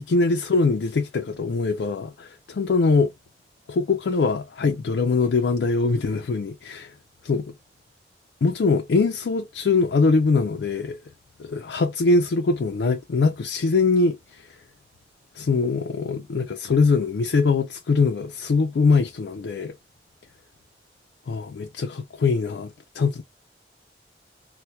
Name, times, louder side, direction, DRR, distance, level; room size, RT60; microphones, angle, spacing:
voice 1, 0.0-3.1 3.7-6.9 7.2-7.5 8.4-11.0 11.4-14.6 15.3-19.7 21.3-23.2, left 4 dB, 75° left, 0.4 m, -22 dB
4.2 x 2.1 x 2.2 m
head